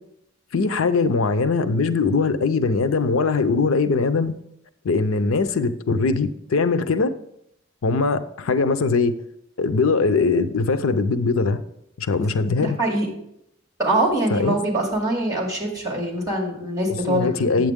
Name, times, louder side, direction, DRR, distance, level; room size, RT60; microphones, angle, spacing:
voice 1, 0.5-4.3 4.8-7.1 7.8-9.2 9.6-11.6 12.0-12.8 14.3-14.6 17.1-17.7, left 4 dB, 85° left, 11 dB, 0.5 m, -21 dB
voice 2, 12.6-13.1 13.8-17.5, right 1 dB, 20° right, -1 dB, 2.4 m, -23 dB
8.7 x 7.6 x 3.6 m, 0.77 s
head